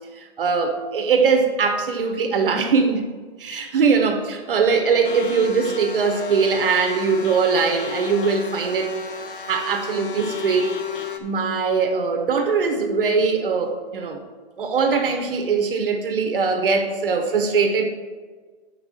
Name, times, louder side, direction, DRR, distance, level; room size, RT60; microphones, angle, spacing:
voice 1, 0.2-3.1 3.4-9.0 9.5-10.8 11.2-14.2 14.6-17.8, right 5 dB, 55° right, 5 dB, 1.2 m, -21 dB
sound 1, 5.0-11.2, left 4 dB, 50° left, 1.0 m, -33 dB
6.3 x 5.8 x 7.0 m, 1.4 s
hypercardioid pair, 175°, 33 cm